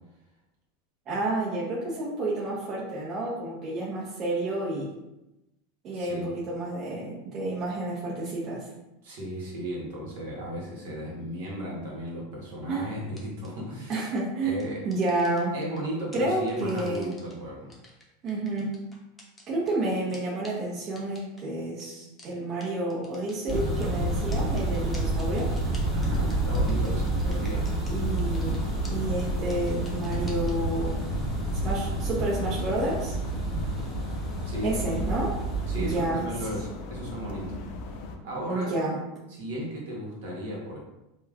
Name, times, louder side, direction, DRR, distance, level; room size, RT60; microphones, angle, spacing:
voice 1, 1.1-4.9 5.8-8.7 12.7-12.9 13.9-14.6 14.8-15.6 16.1-17.1 18.2-18.7 19.5-25.5 27.9-28.6 28.9-31.0 31.6-33.2 34.6-35.4 35.8-36.3 38.5-39.0, right 2 dB, 40° right, -6 dB, 0.7 m, -30 dB
voice 2, 5.9-6.3 9.0-14.1 14.4-14.8 15.5-17.7 25.9-27.7 34.4-35.0 35.7-37.6 38.2-38.7 39.3-40.8, equal, 75° right, -3 dB, 1.0 m, -35 dB
sound 1, 13.2-13.5 13.9-14.2 14.6-15.8 16.1-17.3 17.7-19.7 20.1-20.2 20.4-20.5 21.0-21.4 21.8-21.9 22.2-22.3 22.6-22.7 22.9-23.9 24.3-27.9 28.2-28.6 28.8-28.9 29.2-29.3 29.5-30.5, left 2 dB, 15° left, 0.7 m, -49 dB
sound 2, 23.5-36.1, right 1 dB, 20° right, 1.2 m, -29 dB
sound 3, 28.0-38.2, left 2 dB, 60° left, 0.3 m, -39 dB
3.0 x 2.2 x 2.4 m, 0.95 s
hypercardioid pair, 100°, 0 cm